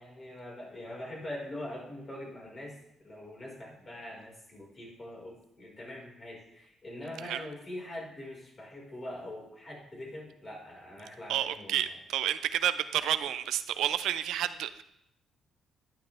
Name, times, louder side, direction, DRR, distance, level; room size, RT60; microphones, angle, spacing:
voice 1, 0.0-11.8, left 1 dB, 35° left, 5.1 m, -43 dB
voice 2, 11.3-14.8, right 11 dB, 85° right, 0.6 m, -30 dB
11.5 x 11.0 x 3.5 m
cardioid pair, 90°, 0 cm